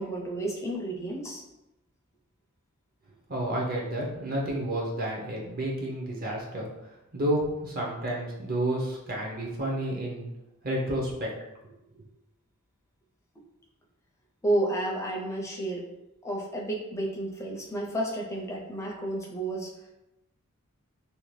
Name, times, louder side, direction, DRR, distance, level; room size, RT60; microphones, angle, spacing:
voice 1, 0.0-1.4 14.4-15.9 16.2-19.7, right 1 dB, 15° left, -1 dB, 0.5 m, -31 dB
voice 2, 3.3-10.3 10.6-11.3 11.9-12.0, right 1 dB, 40° right, -2 dB, 0.6 m, -31 dB
2.7 x 2.1 x 3.1 m, 0.92 s
head